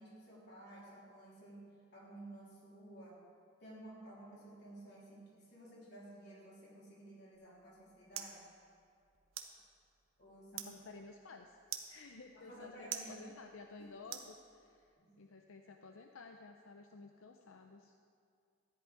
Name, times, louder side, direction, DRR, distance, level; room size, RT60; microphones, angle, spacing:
voice 1, 0.0-1.7 1.9-3.2 3.6-8.5 10.2-10.7 12.3-13.3 13.8-14.1 15.0-15.1, right 1 dB, 55° left, -6 dB, 3.4 m, -54 dB
sound 1, 7.3-14.9, right 9 dB, 80° right, 0.9 m, -50 dB
voice 2, 10.7-11.6 11.9-14.9 15.2-17.9, left 3 dB, 85° left, 4 dB, 0.6 m, -54 dB
13.5 x 10.5 x 4.6 m, 2.3 s
head